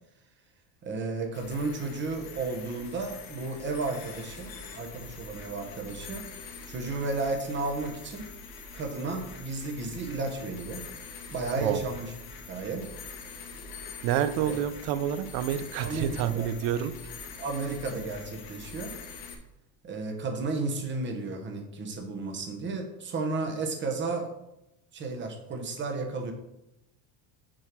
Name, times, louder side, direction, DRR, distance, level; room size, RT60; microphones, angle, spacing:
voice 1, 0.8-6.3 6.7-8.3 8.7-10.9 11.3-12.1 12.5-12.9 15.8-16.5 17.4-19.0 19.8-24.3 24.9-26.3, right 3 dB, 25° right, 4 dB, 1.0 m, -33 dB
sound 1, 1.3-19.3, left 4 dB, 80° left, 1.7 m, -44 dB
voice 2, 14.0-16.9, right 10 dB, 60° right, 13 dB, 0.7 m, -28 dB
6.3 x 4.6 x 6.0 m, 0.91 s
cardioid pair, 160°, 47 cm